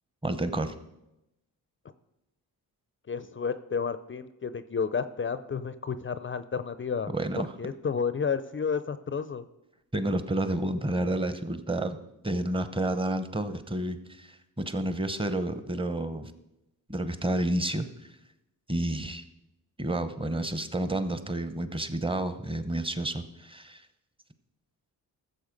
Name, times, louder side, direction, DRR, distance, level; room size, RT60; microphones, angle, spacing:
voice 1, 0.2-0.7 7.1-7.5 9.9-12.0 12.2-16.3 16.9-17.9 18.7-19.2 19.8-23.8, right 1 dB, 15° right, 11 dB, 0.9 m, -30 dB
voice 2, 3.1-7.1 7.6-9.4, left 6 dB, 30° left, 13 dB, 0.5 m, -31 dB
14.5 x 6.9 x 5.3 m, 0.90 s
cardioid pair, 85°, 39 cm